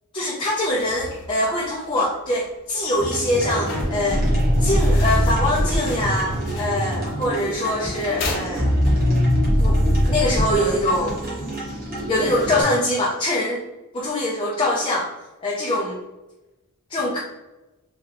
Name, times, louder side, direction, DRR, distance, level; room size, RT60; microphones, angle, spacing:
voice 1, 0.1-4.2 4.6-8.7 9.6-11.2 12.1-13.6 13.9-15.1 15.4-16.0 16.9-17.2, left 1 dB, 20° left, -4 dB, 0.6 m, -23 dB
sound 1, 0.6-9.2, left 2 dB, 55° left, 0.9 m, -37 dB
sound 2, 3.0-12.6, equal, 40° right, 1.4 m, -22 dB
3.6 x 2.8 x 3.3 m, 1.0 s
head